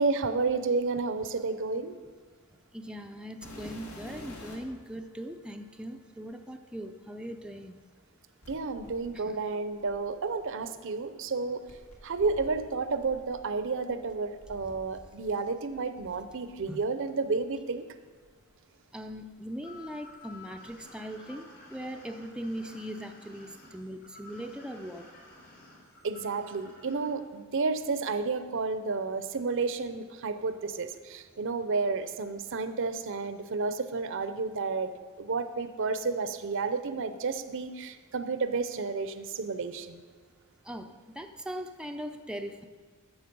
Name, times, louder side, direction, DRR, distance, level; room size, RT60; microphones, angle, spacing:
voice 1, 0.0-2.0 8.5-11.6 12.0-17.8 26.0-40.0, right 4 dB, 60° right, 10 dB, 0.7 m, -31 dB
voice 2, 2.7-7.8 9.1-9.4 16.7-16.8 18.9-25.0 40.6-42.6, equal, 5° right, 4 dB, 0.4 m, -40 dB
sound 1, 3.4-4.8 5.7-5.8 8.4-10.5 11.7-15.4 15.7-16.7 17.5-17.6 18.2-18.3 19.0-20.1 20.4-20.9 22.2-22.3, left 1 dB, 85° left, 2.0 m, -50 dB
sound 2, 19.6-27.1, left 2 dB, 55° left, 3.9 m, -52 dB
12.0 x 7.4 x 5.3 m, 1.5 s
head